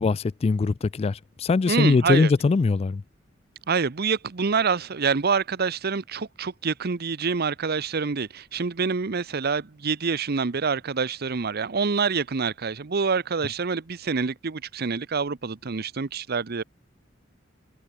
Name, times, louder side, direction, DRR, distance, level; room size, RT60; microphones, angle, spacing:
voice 1, 0.0-3.0, left 4 dB, 30° left, 0.3 m, -22 dB
voice 2, 1.7-2.3 3.7-16.6, right 5 dB, 55° right, 0.7 m, -26 dB
open air
head